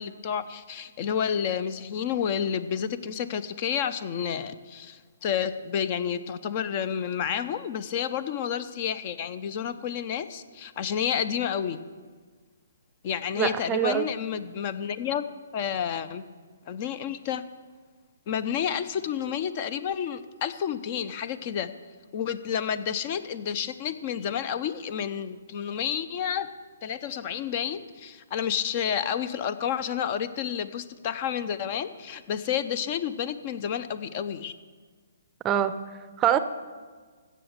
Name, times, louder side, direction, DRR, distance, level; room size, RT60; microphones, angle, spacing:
voice 1, 0.0-11.8 13.0-15.2 15.5-16.2 16.7-17.4 18.3-21.7 22.1-26.5 26.8-34.5, left 8 dB, 40° left, 14 dB, 0.6 m, -30 dB
voice 2, 13.4-14.0 35.4-35.7 36.2-36.4, right 10 dB, 20° right, 12 dB, 0.6 m, -24 dB
15.5 x 6.3 x 6.6 m, 1.5 s
figure-of-eight pair, 130°, 0 cm